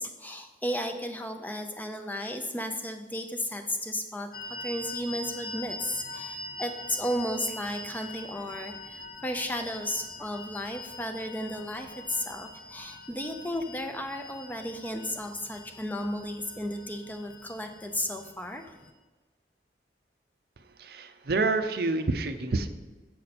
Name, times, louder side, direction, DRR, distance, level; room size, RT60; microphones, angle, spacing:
voice 1, 0.0-4.3 4.6-18.9, equal, 10° left, 5 dB, 0.5 m, -34 dB
sound 1, 4.3-18.9, left 2 dB, 50° left, 0.8 m, -43 dB
voice 2, 20.6-22.7, right 3 dB, 55° right, 9 dB, 0.5 m, -28 dB
7.7 x 6.6 x 4.2 m, 1.2 s
head